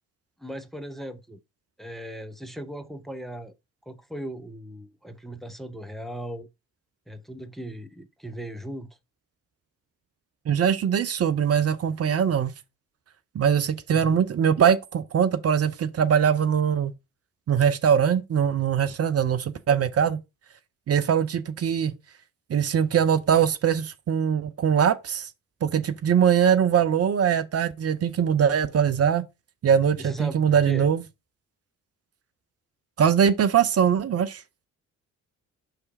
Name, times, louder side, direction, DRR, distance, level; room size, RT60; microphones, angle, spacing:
voice 1, 0.4-1.4 1.8-3.5 3.9-6.5 7.1-8.9 13.9-14.2 30.0-30.4 30.7-30.9, right 1 dB, ahead, 0.7 m, -38 dB
voice 2, 10.5-12.5 13.3-16.9 17.5-20.2 20.9-21.9 22.5-25.3 25.6-29.2 29.6-31.0 33.0-34.4, right 8 dB, 35° right, 0.7 m, -22 dB
5.7 x 3.3 x 5.2 m
figure-of-eight pair, 40°, 43 cm